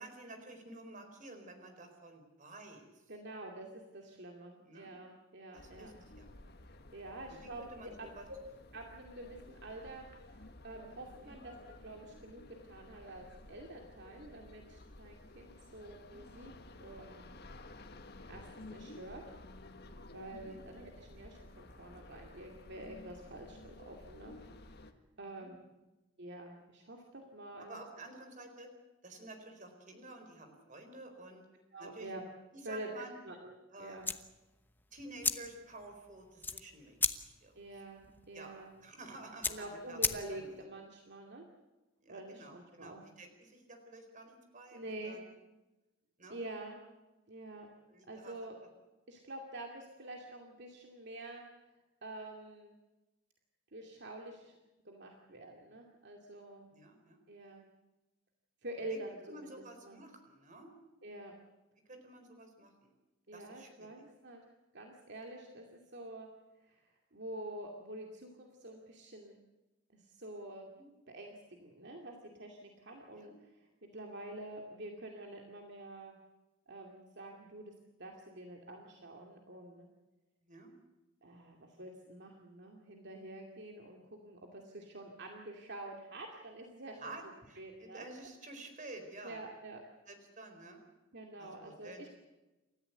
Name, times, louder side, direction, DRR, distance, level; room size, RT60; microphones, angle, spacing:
voice 1, 0.0-3.0 4.6-4.9 5.5-6.3 7.3-8.3 11.2-11.4 16.1-16.2 20.5-20.6 25.2-25.5 27.6-28.7 29.0-31.5 31.8-32.1 32.5-33.2 33.7-34.0 34.9-37.6 38.3-40.6 42.0-45.3 46.2-46.4 47.9-48.5 56.7-57.2 58.9-59.0 59.3-60.7 61.9-62.9 63.3-64.0 70.8-70.9 73.1-73.4 80.4-80.7 87.0-89.4 90.1-90.8 91.4-92.0, right 2 dB, 40° right, 5 dB, 4.3 m, -51 dB
voice 2, 3.1-5.9 6.9-8.4 8.7-16.5 16.8-17.4 18.3-19.2 20.1-24.4 25.2-25.6 26.2-27.8 31.7-32.2 32.6-32.9 33.2-34.1 37.5-38.7 39.5-41.5 42.1-43.0 44.7-45.2 46.3-46.8 47.3-47.7 48.1-48.6 49.1-51.4 52.0-52.8 53.7-54.6 54.8-56.7 57.3-57.6 58.6-60.0 61.0-61.3 63.3-64.4 64.7-66.3 66.6-69.4 69.9-70.7 71.1-73.3 73.8-76.2 76.7-77.7 78.0-79.9 81.2-87.1 87.6-88.0 89.2-89.8 91.1-92.1, right 1 dB, 60° right, 1 dB, 2.4 m, -47 dB
sound 1, 5.6-24.9, left 2 dB, 55° left, 1.6 m, -54 dB
sound 2, 34.0-40.6, left 3 dB, 10° left, 1.0 m, -38 dB
28.5 x 14.0 x 8.0 m, 1.1 s
head